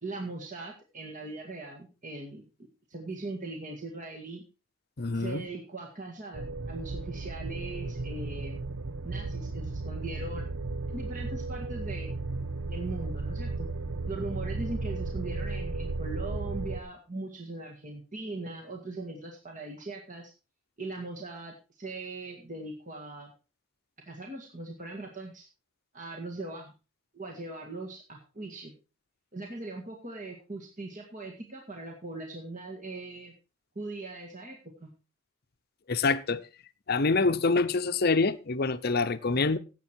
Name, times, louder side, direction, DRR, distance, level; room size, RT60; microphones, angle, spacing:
voice 1, 0.0-2.4 2.9-4.4 5.1-8.6 9.0-10.5 10.9-12.1 12.7-13.7 14.1-20.3 20.8-23.3 24.1-25.5 25.9-26.7 27.1-28.7 29.3-33.3 33.8-34.9, right 2 dB, 40° right, 1.9 m, -40 dB
voice 2, 5.0-5.4 35.9-36.4 36.9-39.6, left 3 dB, 50° left, 0.8 m, -26 dB
sound 1, 6.3-16.8, right 3 dB, 70° right, 0.8 m, -35 dB
16.5 x 7.6 x 4.5 m
head